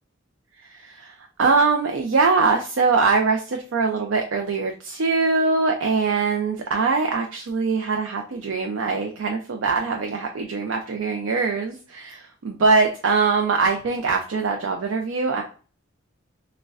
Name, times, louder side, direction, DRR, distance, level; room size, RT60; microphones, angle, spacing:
voice 1, 0.7-15.4, right 4 dB, 75° right, 3 dB, 0.5 m, -22 dB
6.2 x 2.2 x 2.4 m, 0.40 s
head